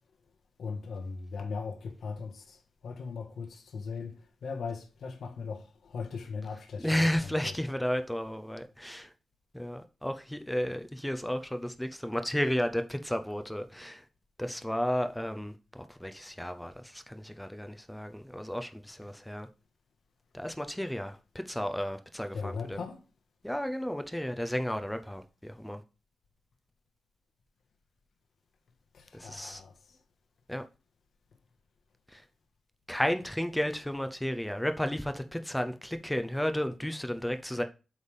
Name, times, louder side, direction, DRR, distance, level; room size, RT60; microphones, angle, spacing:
voice 1, 0.6-7.5 22.3-23.0 28.9-29.7, left 5 dB, 80° left, 1.4 m, -39 dB
voice 2, 6.8-9.1 9.5-14.1 14.4-19.5 20.3-22.8 23.4-25.8 29.1-29.6 30.5-30.6 32.1-32.2 32.9-37.6, equal, 5° left, 0.6 m, -33 dB
8.1 x 3.5 x 5.4 m
wide cardioid pair, 120°, 0 cm